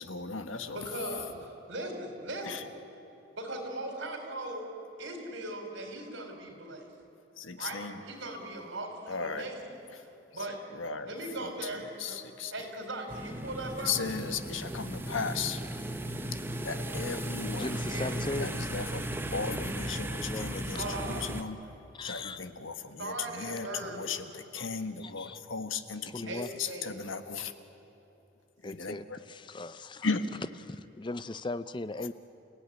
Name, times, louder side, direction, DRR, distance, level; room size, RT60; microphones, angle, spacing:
voice 1, 0.0-0.8 2.4-2.6 7.4-8.0 9.1-9.5 10.3-10.5 10.7-11.1 11.4-12.5 13.8-15.6 16.6-17.9 18.4-21.6 22.0-27.5 28.6-29.2 30.0-30.2 32.0-32.1, left 5 dB, 85° left, 9 dB, 1.5 m, -36 dB
voice 2, 0.7-2.7 3.4-4.7 5.0-6.9 7.5-9.6 10.3-10.6 11.0-12.2 12.5-14.0 17.9-18.1 20.8-21.3 23.0-24.0 26.2-27.0, right 1 dB, 70° right, 4 dB, 4.5 m, -39 dB
sound 1, 13.1-21.4, right 1 dB, 10° right, 1.0 m, -36 dB
voice 3, 17.5-18.5 20.1-20.8 22.0-22.4 24.6-24.7 25.0-25.4 26.1-26.5 28.6-30.1 30.7-32.1, left 2 dB, 25° left, 14 dB, 0.5 m, -38 dB
29.0 x 16.5 x 9.9 m, 3.0 s
head